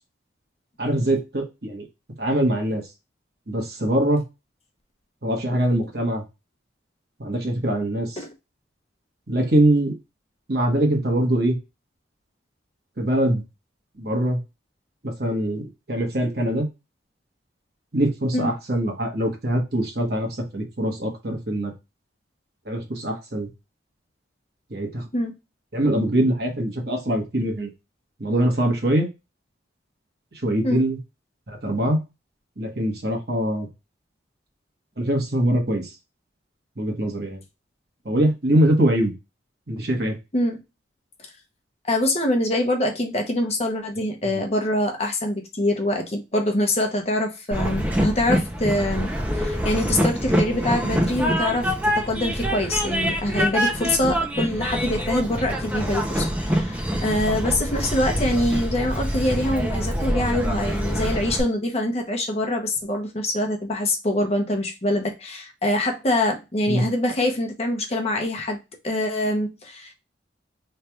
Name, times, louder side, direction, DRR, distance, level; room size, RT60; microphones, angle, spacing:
voice 1, 0.8-1.8 2.2-2.8 3.5-4.2 5.2-6.2 7.2-8.2 9.3-9.9 10.5-11.6 13.0-13.4 14.0-14.4 15.0-16.6 17.9-21.7 22.7-23.5 24.7-25.0 25.7-27.7 28.2-29.1 30.4-31.0 31.5-32.0 32.6-33.7 35.0-35.9 36.8-37.4 38.0-39.2 39.7-40.2 66.7-66.8, right 1 dB, 55° right, 1.2 m, -23 dB
voice 2, 41.9-49.1 49.3-68.6 68.8-69.9, left 1 dB, 35° left, 0.8 m, -24 dB
Train, 47.5-61.4, equal, 10° right, 0.5 m, -25 dB
Acoustic guitar, 50.3-53.8, right 4 dB, 10° left, 1.1 m, -43 dB
3.3 x 2.4 x 4.3 m
head